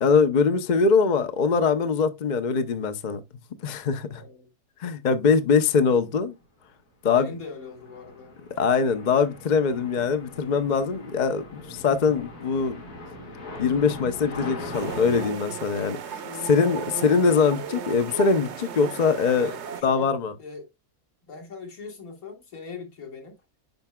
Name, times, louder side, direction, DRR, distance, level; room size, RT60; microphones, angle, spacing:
voice 1, 0.0-3.2 3.6-4.2 4.8-6.3 7.0-7.3 8.6-12.8 13.6-19.5 19.8-20.3, left 5 dB, 45° left, 0.6 m, -22 dB
voice 2, 4.1-4.5 7.1-8.4 16.1-17.1 19.3-20.1 20.4-20.7 21.3-23.4, left 4 dB, 65° left, 2.5 m, -41 dB
sound 1, 7.5-15.3, left 2 dB, 85° left, 2.5 m, -40 dB
sound 2, 14.7-19.8, right 7 dB, 55° right, 0.9 m, -36 dB
9.2 x 5.8 x 2.2 m
omnidirectional pair, 1.6 m